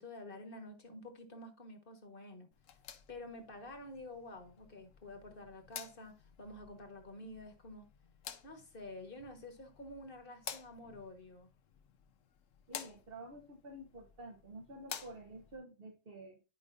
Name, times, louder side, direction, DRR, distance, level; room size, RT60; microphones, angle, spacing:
voice 1, 0.0-2.5 3.1-7.9 8.4-11.5, left 1 dB, 45° left, 1.5 m, -49 dB
sound 1, 2.5-15.6, left 8 dB, 85° left, 1.2 m, -52 dB
voice 2, 12.7-16.4, right 1 dB, 50° right, 1.1 m, -50 dB
11.0 x 5.1 x 2.5 m
omnidirectional pair, 1.3 m